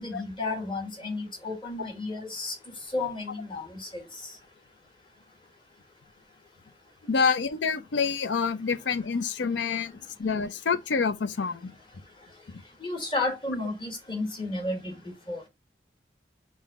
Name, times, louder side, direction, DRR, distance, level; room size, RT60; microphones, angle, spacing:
voice 1, 0.0-2.5 2.9-4.0 12.8-15.0 15.3-15.4, left 2 dB, 30° left, 1.4 m, -32 dB
voice 2, 7.1-9.9 10.2-11.7 12.5-12.6, left 5 dB, 90° left, 0.5 m, -27 dB
3.8 x 2.6 x 4.6 m
head